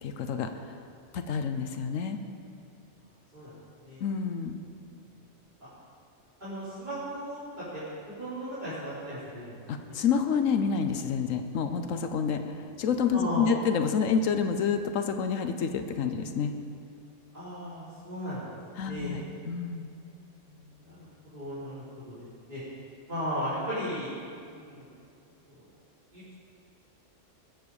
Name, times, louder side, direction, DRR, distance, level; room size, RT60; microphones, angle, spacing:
voice 1, 0.0-0.8 1.1-2.2 4.0-4.6 9.7-16.5 18.8-19.9, left 6 dB, 85° left, 7 dB, 1.2 m, -28 dB
voice 2, 6.4-7.8 8.2-9.5 9.8-10.0 13.1-13.6 17.3-18.6 18.8-19.2 20.3-21.1 21.3-22.6 23.1-24.1 24.5-24.9 25.5-25.7 26.1-26.3, equal, 35° right, -14 dB, 4.2 m, -36 dB
21.0 x 8.0 x 4.9 m, 2.4 s
omnidirectional pair, 1.3 m